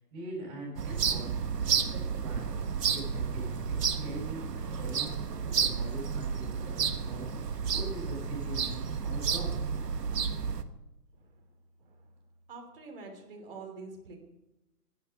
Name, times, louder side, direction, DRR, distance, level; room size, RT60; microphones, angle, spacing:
voice 1, 0.1-1.3 1.6-5.1 5.4-7.2 7.7-9.7, right 1 dB, 15° right, -3 dB, 7.0 m, -43 dB
sound 1, 0.8-10.6, right 6 dB, 80° right, 1.6 m, -31 dB
voice 2, 12.5-14.2, right 4 dB, 35° right, 2 dB, 3.3 m, -45 dB
19.0 x 10.5 x 5.9 m, 0.97 s
hypercardioid pair, 175°, 48 cm